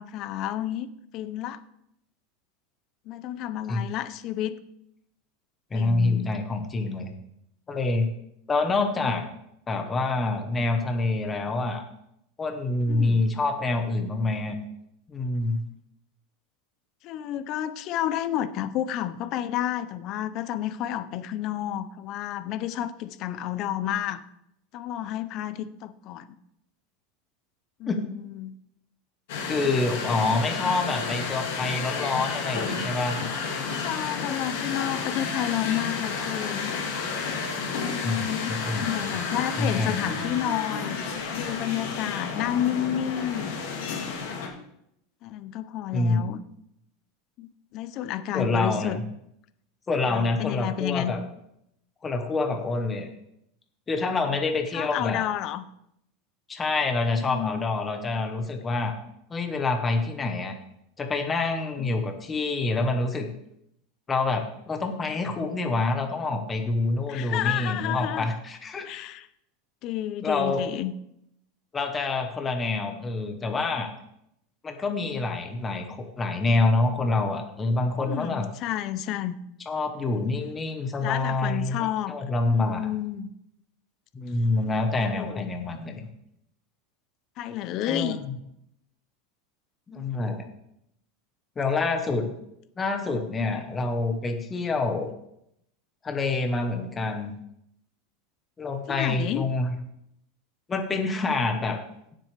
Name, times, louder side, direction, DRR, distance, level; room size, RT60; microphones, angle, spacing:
voice 1, 0.0-1.6 3.1-4.6 5.7-6.3 12.9-13.2 17.0-24.2 24.7-26.4 27.8-28.5 33.6-36.7 37.7-41.0 41.3-43.6 43.9-44.4 45.2-46.4 47.4-49.0 50.0-51.1 54.7-55.6 57.2-57.7 61.8-62.0 67.1-68.3 68.8-69.3 69.8-70.9 78.0-79.3 81.0-82.1 82.4-83.3 85.1-85.4 87.4-88.2 98.9-99.5, left 11 dB, 35° left, 13 dB, 0.6 m, -31 dB
voice 2, 5.7-7.1 7.7-8.1 8.5-9.2 9.7-11.8 12.4-14.6 15.1-15.6 27.9-28.0 29.5-33.2 38.0-39.2 39.6-40.0 45.9-46.2 48.3-49.0 49.9-51.2 52.0-53.1 53.9-55.2 56.5-58.9 59.3-60.6 61.0-63.3 64.1-68.9 70.2-70.6 71.7-73.9 74.6-78.5 79.7-82.9 84.1-86.1 87.9-88.3 89.9-90.5 91.6-92.3 92.8-95.1 96.0-97.4 98.6-99.8 100.7-101.8, left 3 dB, 15° left, 5 dB, 1.0 m, -27 dB
sound 1, 29.3-44.5, left 5 dB, 70° left, 2.9 m, -31 dB
16.5 x 7.6 x 3.3 m, 0.77 s
supercardioid pair, 170°, 0 cm